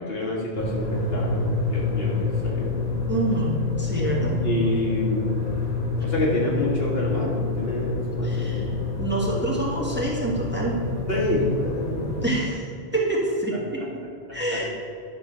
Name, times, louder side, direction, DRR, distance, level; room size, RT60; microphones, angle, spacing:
voice 1, 0.0-2.9 4.4-5.5 6.0-8.8 11.1-12.2 13.8-13.9 14.3-14.6, left 1 dB, 65° left, -4 dB, 2.0 m, -28 dB
sound 1, 0.6-12.3, left 3 dB, 40° left, 1.4 m, -27 dB
voice 2, 3.1-4.4 8.2-8.6 9.0-10.8 12.2-12.6 12.9-13.8 14.3-14.6, right 2 dB, 10° right, -4 dB, 1.6 m, -26 dB
11.5 x 4.5 x 6.7 m, 2.4 s
omnidirectional pair, 1.1 m